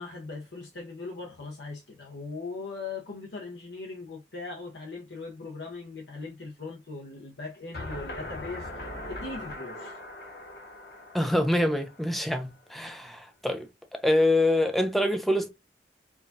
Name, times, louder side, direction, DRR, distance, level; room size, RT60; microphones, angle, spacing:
voice 1, 0.0-10.0, left 3 dB, 85° left, 0.8 m, -40 dB
sound 1, 7.7-12.7, left 1 dB, 60° left, 1.1 m, -41 dB
voice 2, 11.1-13.7 13.9-15.5, left 1 dB, ahead, 0.5 m, -25 dB
4.7 x 2.3 x 2.6 m
head